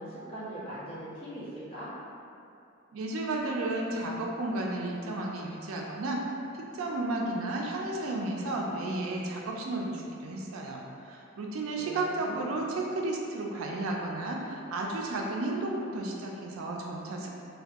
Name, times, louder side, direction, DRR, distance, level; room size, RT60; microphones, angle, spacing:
voice 1, 0.0-1.9 11.8-12.5, right 1 dB, 25° left, -12 dB, 1.0 m, -41 dB
voice 2, 2.9-6.2 6.6-17.3, right 2 dB, 80° right, -1 dB, 0.4 m, -33 dB
2.6 x 2.2 x 3.4 m, 2.6 s
head